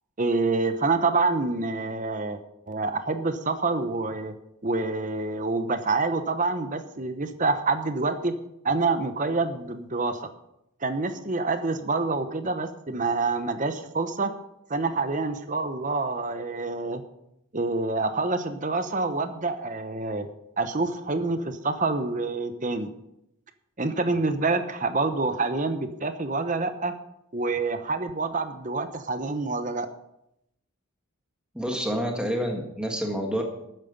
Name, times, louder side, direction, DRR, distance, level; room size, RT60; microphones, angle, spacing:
voice 1, 0.2-2.4 2.7-4.3 4.6-8.3 8.6-10.2 10.8-14.3 14.7-17.0 17.5-20.3 20.6-22.9 23.8-26.9 27.3-29.9, right 3 dB, 35° right, 9 dB, 0.9 m, -27 dB
voice 2, 31.5-33.4, equal, 5° right, 1 dB, 1.5 m, -28 dB
13.0 x 9.0 x 5.4 m, 0.82 s
head